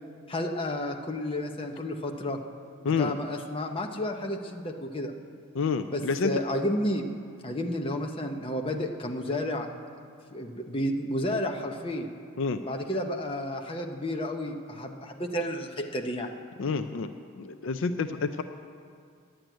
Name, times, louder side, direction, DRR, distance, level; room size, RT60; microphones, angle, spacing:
voice 1, 0.3-2.4 3.0-5.1 5.9-7.1 7.4-9.7 10.3-12.1 12.6-16.3, left 1 dB, 25° left, 3 dB, 0.7 m, -31 dB
voice 2, 5.5-6.3 12.4-12.6 16.6-17.1 17.4-18.4, left 5 dB, 60° left, 9 dB, 0.4 m, -28 dB
10.5 x 7.6 x 9.2 m, 2.2 s
head